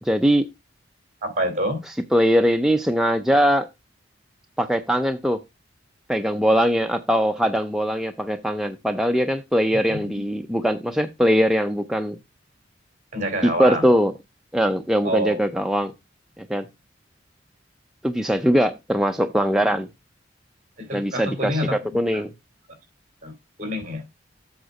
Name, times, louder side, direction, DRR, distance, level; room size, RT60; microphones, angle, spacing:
voice 1, 0.0-0.5 1.9-3.7 4.6-5.4 6.1-12.2 13.4-14.1 14.5-15.9 16.4-16.7 18.0-19.9 20.9-22.3, equal, ahead, 0.5 m, -21 dB
voice 2, 1.2-1.8 13.1-13.8 15.0-15.4 20.8-22.2 23.2-23.3 23.6-24.0, equal, 40° right, 2.9 m, -27 dB
8.0 x 5.0 x 4.9 m
head